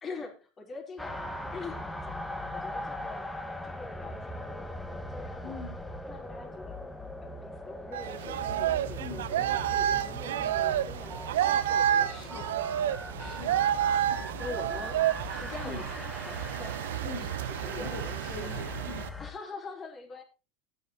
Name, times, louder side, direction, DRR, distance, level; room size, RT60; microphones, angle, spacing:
voice 1, 0.0-1.2 1.5-2.2 2.5-3.3 3.6-4.8 5.1-5.7 6.1-6.9 7.2-12.7 14.0-18.6 19.2-20.2, left 4 dB, 30° left, 3 dB, 3.9 m, -44 dB
sound 1, 1.0-19.3, left 1 dB, 10° left, 1.8 m, -41 dB
voice 2, 5.4-5.8 9.0-9.3 12.0-12.7 13.2-13.7 15.6-15.9 17.0-17.4 17.8-19.1, left 6 dB, 60° left, 1 dB, 3.3 m, -43 dB
sound 2, 7.9-19.1, right 11 dB, 75° right, 0.8 m, -30 dB
sound 3, 11.1-16.2, right 2 dB, 10° right, 1.7 m, -45 dB
16.0 x 9.3 x 3.0 m, 0.29 s
hypercardioid pair, 85°, 0 cm